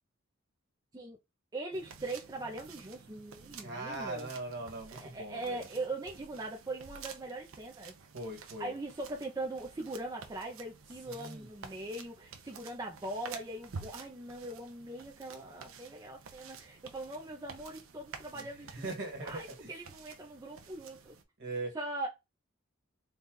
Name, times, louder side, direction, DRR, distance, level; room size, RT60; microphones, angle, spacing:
voice 1, 1.5-4.3 4.9-7.9 8.6-18.9 19.2-21.1 21.7-22.1, right 2 dB, 20° right, 0.5 m, -41 dB
sound 1, 1.7-21.2, right 5 dB, 75° right, 0.7 m, -51 dB
voice 2, 3.6-5.7 8.1-8.7 11.0-11.5 18.3-19.7 21.4-21.7, right 2 dB, 60° right, 1.7 m, -40 dB
4.0 x 2.4 x 3.8 m
head